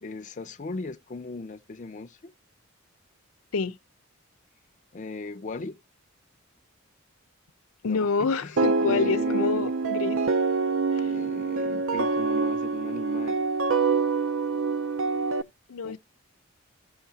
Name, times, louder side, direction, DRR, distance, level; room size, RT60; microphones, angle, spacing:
voice 1, 0.0-2.3 4.9-5.8 7.8-8.6 8.8-9.7 11.0-13.5 15.8-16.0, left 3 dB, 35° left, 0.4 m, -37 dB
voice 2, 7.8-10.3 10.9-11.1 15.7-16.0, left 4 dB, 85° left, 0.6 m, -27 dB
sound 1, 8.6-15.4, right 4 dB, 65° right, 0.5 m, -26 dB
15.0 x 5.7 x 2.7 m
head